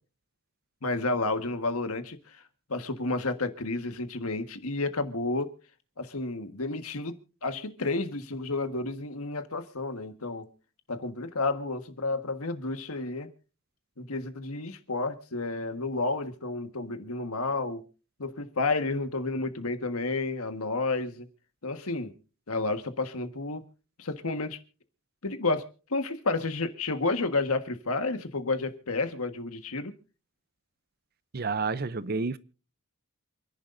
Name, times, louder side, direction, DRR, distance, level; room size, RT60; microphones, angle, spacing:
voice 1, 0.8-2.4 2.7-5.5 6.0-7.2 7.4-10.5 10.9-13.3 14.0-17.8 18.2-21.3 21.6-22.1 22.5-23.6 24.0-24.6 25.2-25.6 25.9-29.9, left 3 dB, 85° left, 1.5 m, -31 dB
voice 2, 31.3-32.4, right 4 dB, 45° right, 0.6 m, -29 dB
28.0 x 11.0 x 2.6 m
head